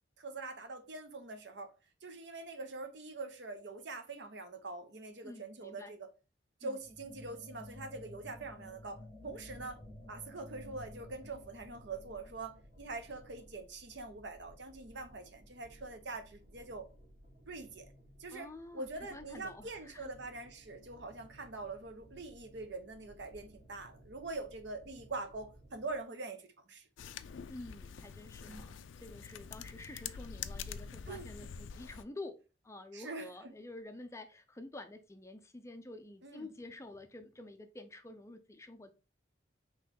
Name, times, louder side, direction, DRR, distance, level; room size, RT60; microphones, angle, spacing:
voice 1, 0.2-1.7 2.0-6.1 6.6-9.8 10.1-16.9 17.5-17.9 18.2-26.9 28.5-28.7 31.1-31.5 32.9-33.5 36.2-36.5, right 3 dB, 65° right, 0.8 m, -44 dB
voice 2, 5.2-5.9 6.6-6.8 18.3-20.1 27.4-32.4 32.6-38.9, left 2 dB, 15° left, 0.4 m, -49 dB
sound 1, 6.8-13.6, left 2 dB, 10° right, 1.2 m, -53 dB
sound 2, 8.9-26.0, equal, 45° right, 1.7 m, -59 dB
sound 3, 27.0-32.0, left 7 dB, 85° left, 0.4 m, -45 dB
4.2 x 3.1 x 3.6 m
head